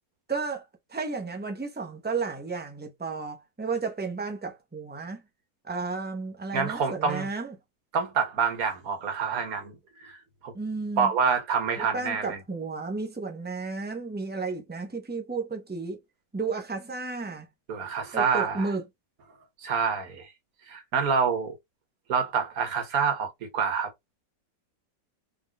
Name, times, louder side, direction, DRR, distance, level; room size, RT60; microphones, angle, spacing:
voice 1, 0.3-5.2 5.6-7.5 10.5-11.1 11.8-16.0 16.3-17.5 18.1-18.8, right 4 dB, 10° right, 0.4 m, -33 dB
voice 2, 6.5-7.3 7.9-10.2 10.4-10.5 11.0-12.4 17.7-18.7 19.6-20.3 20.7-21.5 22.1-23.9, right 6 dB, 70° right, 1.6 m, -27 dB
3.9 x 3.5 x 2.3 m
omnidirectional pair, 1.6 m